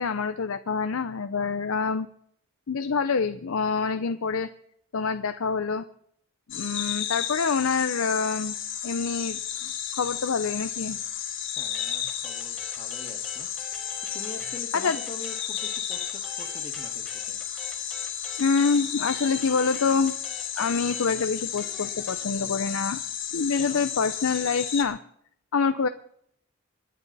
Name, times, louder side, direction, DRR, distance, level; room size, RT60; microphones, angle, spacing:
voice 1, 0.0-2.1 2.7-4.5 4.9-5.8 6.5-8.5 8.8-9.4 9.9-11.0 14.7-15.0 18.4-20.1 20.6-23.0 23.3-25.0 25.5-25.9, left 5 dB, 80° left, 10 dB, 0.6 m, -26 dB
sound 1, 6.5-24.8, left 9 dB, 60° left, 2.1 m, -33 dB
voice 2, 11.6-13.5 14.1-17.4 23.6-23.9, left 2 dB, 30° left, 4 dB, 1.9 m, -44 dB
sound 2, 11.7-14.6 14.9-22.2, left 1 dB, ahead, 3.1 m, -45 dB
26.0 x 10.5 x 4.1 m, 0.68 s
head